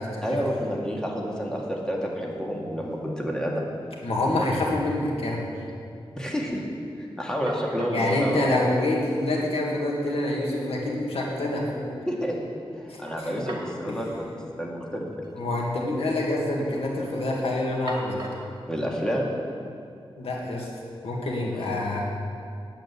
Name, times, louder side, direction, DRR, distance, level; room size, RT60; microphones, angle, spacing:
voice 1, 0.2-3.7 6.2-6.6 7.0-8.4 12.1-12.4 12.8-14.3 14.6-15.1 18.7-19.3, equal, 5° left, -2 dB, 2.0 m, -29 dB
sound 1, 1.0-1.1 1.3-1.9 2.3-3.2 3.4-3.5 7.0-7.1 7.5-8.1 9.2-9.3 9.7-9.8 13.1-13.8 14.1-14.2 15.1-15.3 15.6-16.2 16.6-17.0 17.9-18.6, right 2 dB, 50° right, 2.4 m, -41 dB
voice 2, 4.0-5.4 7.9-11.9 12.9-13.4 13.8-14.0 15.3-18.2 20.2-20.7 21.0-22.0, left 1 dB, 85° left, -3 dB, 2.2 m, -26 dB
9.0 x 8.0 x 9.4 m, 2.4 s
wide cardioid pair, 90°, 10 cm